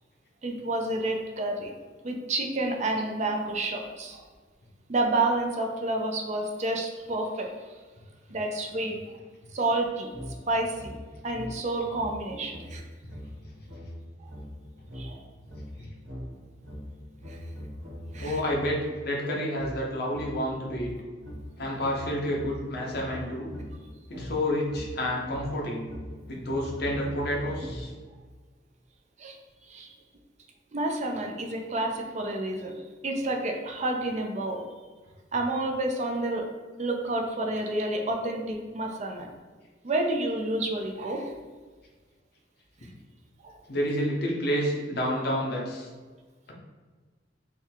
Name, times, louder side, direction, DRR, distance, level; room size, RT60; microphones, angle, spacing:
voice 1, 0.4-1.7 2.0-4.2 4.9-7.5 8.3-9.2 9.5-10.1 10.5-11.0 11.2-12.8 14.2-14.3 14.9-15.2 17.3-17.4 18.1-18.4 29.2-29.4 29.7-29.9 30.7-32.8 33.0-34.6 35.3-36.4 36.8-39.3 39.8-41.3 43.4-43.5, right 2 dB, 40° right, 2 dB, 0.5 m, -29 dB
sound 1, 10.1-18.9 19.5-28.2, equal, 80° right, 1.2 m, -41 dB
voice 2, 18.2-20.9 21.6-23.5 24.1-25.9 26.3-27.9 43.7-45.9, equal, 60° left, -2 dB, 0.8 m, -29 dB
3.6 x 2.3 x 4.4 m, 1.4 s
head